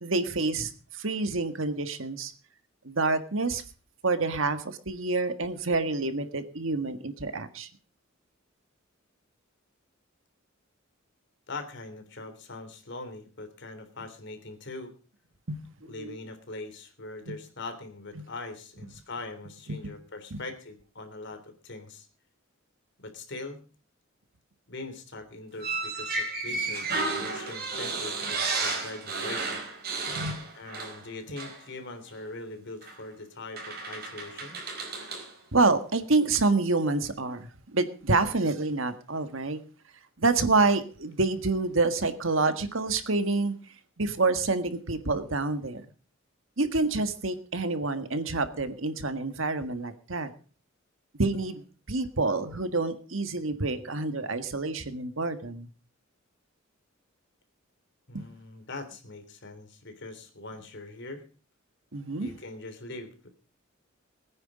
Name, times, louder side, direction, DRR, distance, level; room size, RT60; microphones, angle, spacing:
voice 1, 0.0-2.3 2.9-3.6 4.0-7.7 15.5-16.2 17.3-17.4 18.2-18.3 19.7-19.8 20.3-20.4 30.1-30.4 35.5-39.6 40.2-43.6 44.0-45.9 46.6-50.3 51.2-51.6 51.9-55.7 58.1-58.2 61.9-62.3, right 3 dB, 70° right, 10 dB, 1.7 m, -27 dB
voice 2, 11.5-15.0 15.8-22.1 23.0-23.6 24.7-29.6 30.5-34.6 58.1-61.2 62.2-63.3, left 2 dB, 60° left, 7 dB, 3.4 m, -42 dB
sound 1, 25.6-31.1 31.4-31.6 32.8-33.0 33.6-35.3, right 3 dB, 50° right, 4.4 m, -32 dB
21.0 x 9.8 x 4.9 m, 0.37 s
head